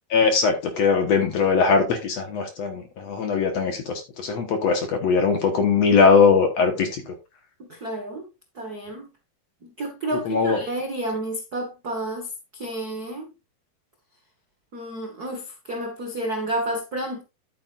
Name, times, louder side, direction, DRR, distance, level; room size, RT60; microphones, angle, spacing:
voice 1, 0.1-7.1 10.3-10.6, left 5 dB, 55° left, 2.1 m, -20 dB
voice 2, 7.7-8.3 8.5-9.1 9.6-13.3 14.7-17.2, right 1 dB, 55° right, 1.0 m, -30 dB
11.0 x 8.7 x 2.5 m
omnidirectional pair, 4.2 m